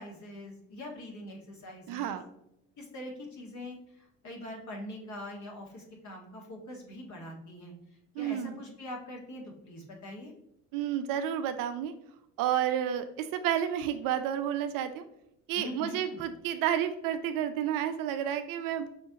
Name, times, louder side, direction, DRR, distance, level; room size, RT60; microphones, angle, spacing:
voice 1, 0.0-2.2 2.8-7.7 8.2-10.3 15.5-16.2, left 1 dB, 45° left, 0 dB, 1.7 m, -43 dB
voice 2, 1.9-2.2 8.2-8.6 10.7-11.9 12.4-15.0 15.5-18.9, right 10 dB, 55° right, 9 dB, 0.5 m, -31 dB
5.6 x 3.4 x 2.8 m, 0.79 s
hypercardioid pair, 60°, 42 cm